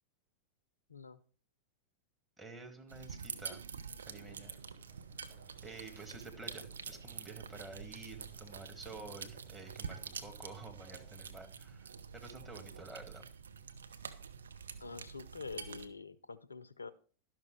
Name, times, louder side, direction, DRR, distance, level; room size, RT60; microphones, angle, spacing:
voice 1, 0.9-1.2 14.8-16.9, left 4 dB, 80° left, 16 dB, 0.5 m, -46 dB
voice 2, 2.4-3.7 4.1-4.5 5.6-13.2, right 3 dB, 15° right, 2 dB, 1.7 m, -50 dB
sound 1, 2.9-15.9, right 6 dB, 70° right, 0.8 m, -47 dB
sound 2, 4.1-11.3, right 2 dB, 45° right, 6.1 m, -65 dB
12.0 x 6.0 x 4.6 m, 0.41 s
figure-of-eight pair, 90°, 0 cm